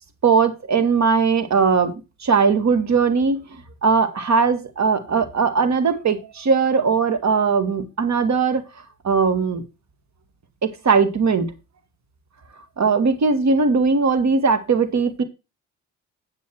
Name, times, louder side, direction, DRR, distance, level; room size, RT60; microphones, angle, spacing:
voice 1, 0.2-2.0 2.2-3.4 3.8-8.6 9.0-9.6 10.6-11.5 12.8-15.2, right 5 dB, 55° right, 9 dB, 2.3 m, -19 dB
9.9 x 6.1 x 4.6 m, 0.26 s
supercardioid pair, 50°, 33 cm